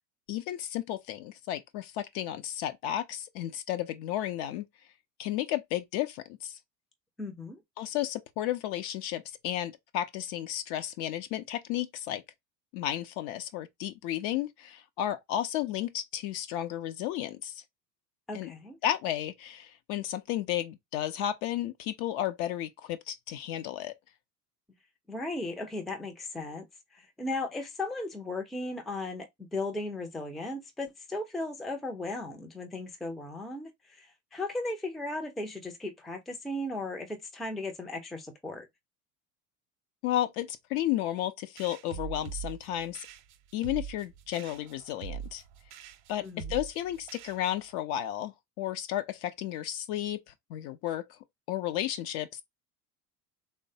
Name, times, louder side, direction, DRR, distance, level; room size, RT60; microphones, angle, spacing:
voice 1, 0.3-4.6 5.2-6.6 7.8-12.2 12.7-17.6 18.3-18.5 18.8-23.9 40.0-43.1 43.5-45.4 46.1-50.2 50.5-51.2 51.5-52.4, left 12 dB, 50° left, 0.6 m, -33 dB
voice 2, 7.2-7.6 18.3-18.8 25.1-26.7 26.9-38.7 46.2-46.5, left 2 dB, ahead, 0.4 m, -36 dB
sound 1, 41.6-47.8, right 8 dB, 60° right, 0.7 m, -43 dB
3.2 x 2.1 x 2.7 m
hypercardioid pair, 85°, 49 cm